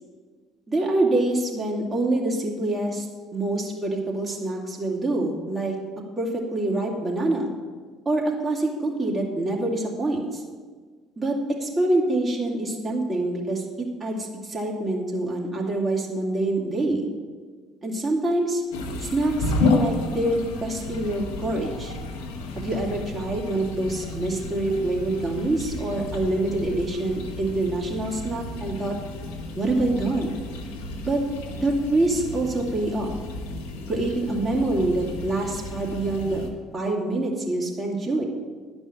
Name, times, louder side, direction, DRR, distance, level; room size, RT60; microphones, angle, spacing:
voice 1, 0.7-3.1 3.3-5.7 6.2-7.5 8.0-10.4 11.2-17.1 17.8-18.6 19.0-21.9 22.5-28.9 29.6-30.4 31.0-31.2 31.6-33.1 33.9-36.5 36.7-38.2, right 2 dB, 30° right, -2 dB, 2.7 m, -25 dB
sound 1, 18.7-36.5, left 2 dB, 65° left, 1.5 m, -32 dB
11.0 x 5.4 x 8.8 m, 1.5 s
figure-of-eight pair, 55°, 0 cm